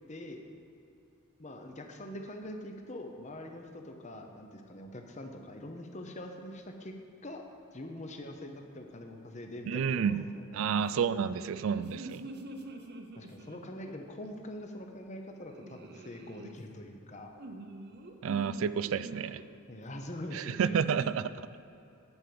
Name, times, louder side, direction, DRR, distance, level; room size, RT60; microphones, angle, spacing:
voice 1, 0.1-0.4 1.4-6.9 7.2-7.4 7.7-10.8 13.2-17.3 19.7-20.8, left 1 dB, 30° left, 4 dB, 0.8 m, -44 dB
voice 2, 9.7-10.3 10.5-12.3 18.2-19.5 20.3-21.3, right 7 dB, 65° right, 15 dB, 0.3 m, -30 dB
sound 1, 11.0-14.0 15.5-16.6 17.4-19.5 20.8-21.1, right 2 dB, 50° right, 0.7 m, -46 dB
9.8 x 5.2 x 7.7 m, 2.7 s
head